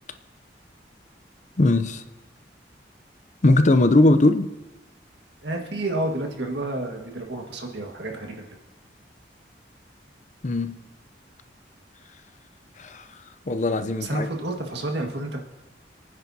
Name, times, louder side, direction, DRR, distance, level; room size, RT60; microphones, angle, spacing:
voice 1, 1.6-2.0 3.4-4.5 10.4-10.7 12.8-13.1 13.5-14.3, left 2 dB, 45° left, 10 dB, 0.6 m, -19 dB
voice 2, 5.4-8.3 14.0-15.4, right 2 dB, 80° right, 1 dB, 1.8 m, -30 dB
28.0 x 9.6 x 2.8 m, 1.1 s
head